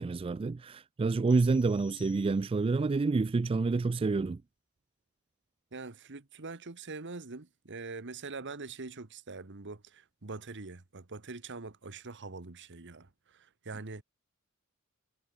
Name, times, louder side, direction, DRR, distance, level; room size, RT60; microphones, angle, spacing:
voice 1, 0.0-4.4, right 3 dB, 25° right, 0.3 m, -28 dB
sound 1, 1.3-2.8, left 8 dB, 30° left, 2.6 m, -57 dB
voice 2, 5.7-14.0, right 3 dB, 55° right, 1.4 m, -43 dB
head